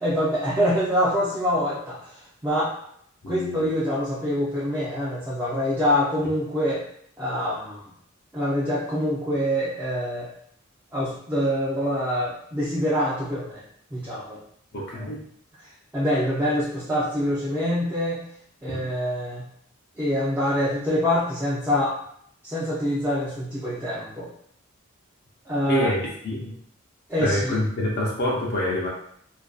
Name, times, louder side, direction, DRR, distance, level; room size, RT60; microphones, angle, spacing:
voice 1, 0.0-2.7 3.3-6.8 7.2-7.9 8.3-10.3 10.9-13.6 13.9-14.4 15.9-18.3 18.6-19.4 20.0-22.0 22.4-24.3 25.5-25.9 27.1-27.6, equal, 10° right, -8 dB, 0.4 m, -25 dB
voice 2, 3.2-3.7 14.7-15.2 18.7-18.8 25.7-26.5 27.2-28.9, left 1 dB, 50° left, -3 dB, 0.5 m, -26 dB
2.5 x 2.2 x 2.3 m, 0.67 s
head